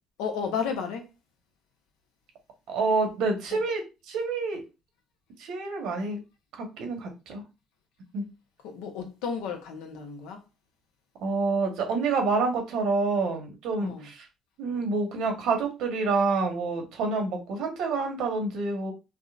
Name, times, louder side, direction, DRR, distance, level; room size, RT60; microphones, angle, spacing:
voice 1, 0.2-1.1 3.5-3.6 8.6-10.4 13.8-14.0, left 6 dB, 90° left, 0.7 m, -33 dB
voice 2, 2.7-4.6 5.4-6.2 6.6-7.4 8.1-8.2 11.2-14.3 14.6-18.9, right 4 dB, 80° right, 1.0 m, -28 dB
3.6 x 2.1 x 2.4 m
supercardioid pair, 80°, 0 cm